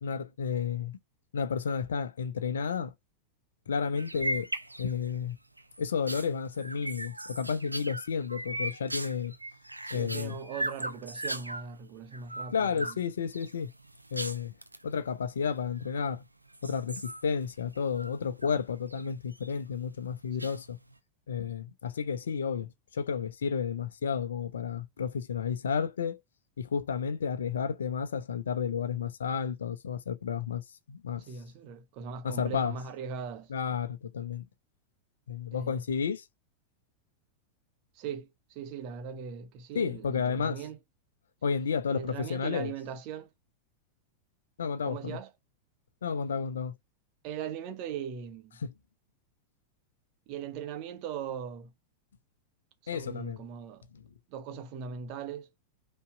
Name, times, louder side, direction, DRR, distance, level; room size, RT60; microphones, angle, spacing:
voice 1, 0.0-1.0 1.3-2.9 3.7-4.5 4.8-5.4 5.8-9.3 9.9-10.4 12.5-13.7 14.1-14.5 14.8-16.2 16.6-20.8 21.3-26.2 26.6-31.2 32.2-32.7 33.5-34.4 35.3-36.2 39.7-40.6 41.4-42.7 44.6-45.2 46.0-46.7 48.6-48.7 52.9-53.4 53.9-54.0, left 6 dB, 65° left, 0.9 m, -32 dB
sound 1, 4.0-5.2 5.6-11.7 12.1-13.0 13.3-14.8 15.6-16.2 16.5-18.6 18.9-19.5 20.4-20.9, right 1 dB, 85° right, 0.7 m, -38 dB
voice 2, 9.8-13.0 20.4-20.5 31.3-33.5 35.5-35.8 37.9-40.8 41.9-43.3 44.8-45.3 47.2-48.6 50.3-51.7 52.8-53.9 54.3-55.5, right 7 dB, 45° right, 1.3 m, -40 dB
5.5 x 3.4 x 5.0 m
figure-of-eight pair, 90°, 0 cm